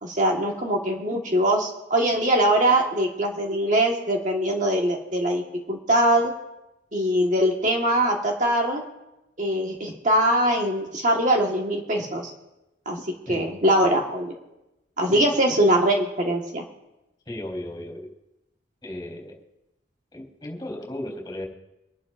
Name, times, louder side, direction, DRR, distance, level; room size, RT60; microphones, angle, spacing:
voice 1, 0.0-6.3 6.9-8.8 9.4-12.3 12.8-14.3 15.0-16.6, right 1 dB, 45° right, 0 dB, 1.4 m, -22 dB
voice 2, 17.3-18.1 18.8-19.4 20.1-21.4, left 1 dB, 20° left, 1 dB, 3.8 m, -35 dB
25.0 x 11.5 x 2.5 m, 0.95 s
head